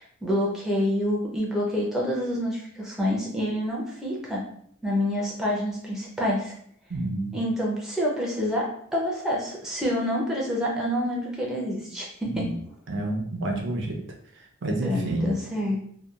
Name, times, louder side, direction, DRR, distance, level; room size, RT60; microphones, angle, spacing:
voice 1, 0.0-4.4 4.8-6.5 7.3-12.5 14.8-15.8, equal, ahead, -4 dB, 0.5 m, -27 dB
voice 2, 6.9-7.4 12.3-12.5 12.9-14.0 14.6-15.3, right 1 dB, 60° right, 1 dB, 0.5 m, -29 dB
2.7 x 2.2 x 2.3 m, 0.64 s
head